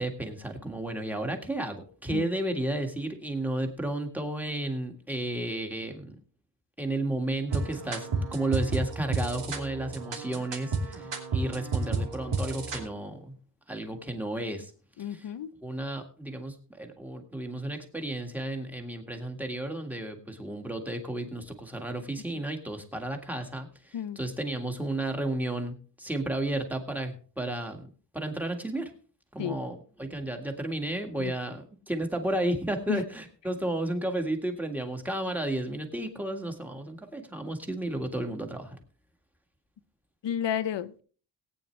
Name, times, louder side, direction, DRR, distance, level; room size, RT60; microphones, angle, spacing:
voice 1, 0.0-6.1 6.8-13.4 13.7-14.7 15.0-15.3 15.6-27.8 28.1-28.9 29.3-38.8, right 1 dB, 5° right, 1.8 m, -33 dB
sound 1, 7.5-12.9, right 4 dB, 90° right, 2.8 m, -32 dB
voice 2, 15.0-15.5 23.9-24.2 29.4-29.6 31.2-31.3 32.9-33.0 40.2-41.0, left 9 dB, 80° left, 0.8 m, -31 dB
18.5 x 9.1 x 3.3 m
wide cardioid pair, 125°, 42 cm